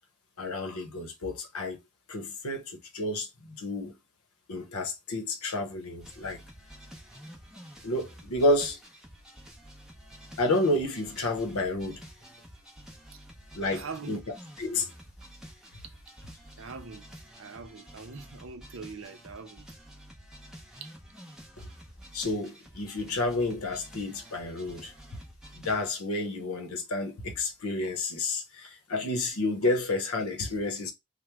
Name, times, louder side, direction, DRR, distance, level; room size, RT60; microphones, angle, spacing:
voice 1, 0.4-1.8 2.1-3.9 4.5-6.4 7.8-8.8 10.4-12.0 13.5-14.2 14.6-14.9 22.1-24.9 25.6-30.9, left 2 dB, 80° left, 0.8 m, -30 dB
sound 1, 6.0-25.9, equal, 5° right, 0.6 m, -50 dB
voice 2, 13.7-14.2 16.6-17.0 17.4-19.6 20.8-20.9, right 4 dB, 60° right, 0.6 m, -42 dB
3.0 x 2.1 x 3.3 m
head